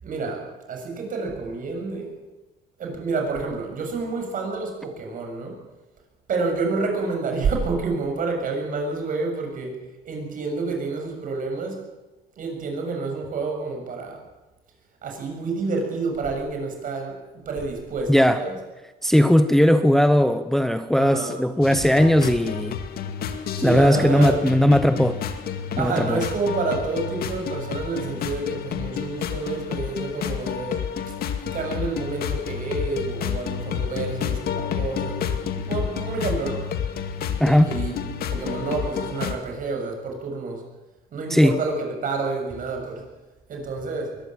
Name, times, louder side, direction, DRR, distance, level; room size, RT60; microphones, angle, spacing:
voice 1, 0.0-2.1 2.8-5.6 6.3-9.8 10.0-11.8 12.4-14.2 15.0-17.2 17.4-18.5 21.0-21.3 23.6-24.4 25.8-31.2 31.5-36.7 37.6-40.6 41.1-43.0 43.5-44.2, right 4 dB, 55° right, 2 dB, 6.9 m, -29 dB
voice 2, 18.1-18.4 19.0-22.8 23.6-25.2 25.8-26.2 37.4-37.7 41.3-41.6, equal, ahead, 10 dB, 0.9 m, -18 dB
sound 1, 21.6-39.3, left 8 dB, 65° left, 2.2 m, -30 dB
22.5 x 18.5 x 7.5 m, 1.1 s
cardioid pair, 110°, 17 cm